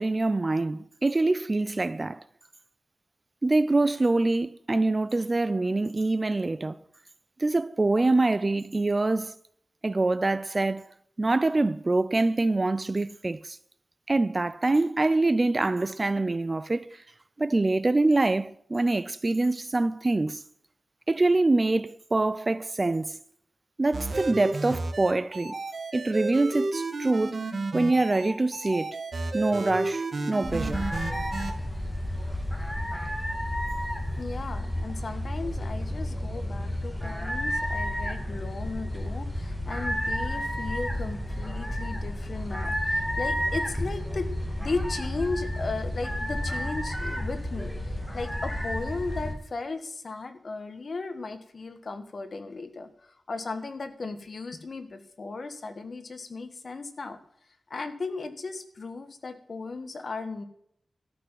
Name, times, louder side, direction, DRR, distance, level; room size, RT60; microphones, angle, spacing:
voice 1, 0.0-2.2 3.4-6.8 7.4-9.3 9.8-10.9 11.2-13.6 14.1-17.0 17.4-20.4 21.1-23.2 23.8-25.6 25.9-27.4 27.7-29.0 29.3-30.9, right 2 dB, 30° right, 0.4 m, -25 dB
sound 1, 23.9-31.5, right 3 dB, 55° right, 1.7 m, -32 dB
sound 2, 30.4-49.3, equal, 5° left, 2.5 m, -31 dB
voice 2, 34.2-44.3 44.6-57.2 57.7-60.4, left 3 dB, 55° left, 1.5 m, -36 dB
13.5 x 6.1 x 8.9 m
wide cardioid pair, 120°, 0 cm